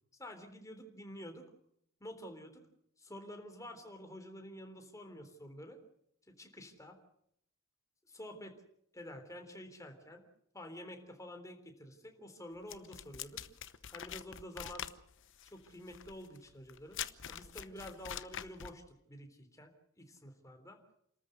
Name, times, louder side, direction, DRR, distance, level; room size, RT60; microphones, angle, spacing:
voice 1, 0.2-1.4 2.0-2.6 3.0-5.8 6.3-7.0 8.1-8.6 8.9-10.2 10.5-13.4 13.9-14.8 15.4-17.0 17.3-19.7 20.0-20.8, left 1 dB, 15° left, 5 dB, 3.6 m, -49 dB
sound 1, 12.7-18.8, left 9 dB, 60° left, 1.0 m, -45 dB
29.5 x 14.0 x 8.1 m, 0.73 s
head